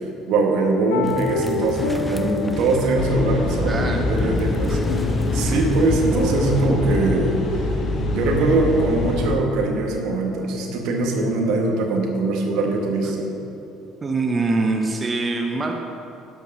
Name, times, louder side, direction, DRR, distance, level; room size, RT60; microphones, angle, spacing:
voice 1, 0.3-4.8 5.3-7.4 8.1-13.3, right 2 dB, 65° right, 0 dB, 1.5 m, -22 dB
sound 1, 0.9-7.6, left 4 dB, 75° left, 0.6 m, -30 dB
sound 2, 1.0-6.7, left 1 dB, 10° left, 0.6 m, -34 dB
sound 3, 3.0-9.4, left 2 dB, 45° left, 1.0 m, -24 dB
voice 2, 3.6-4.0 14.0-15.7, right 3 dB, 30° right, 2 dB, 0.7 m, -23 dB
12.0 x 4.6 x 5.5 m, 2.8 s
hypercardioid pair, 55°, 0 cm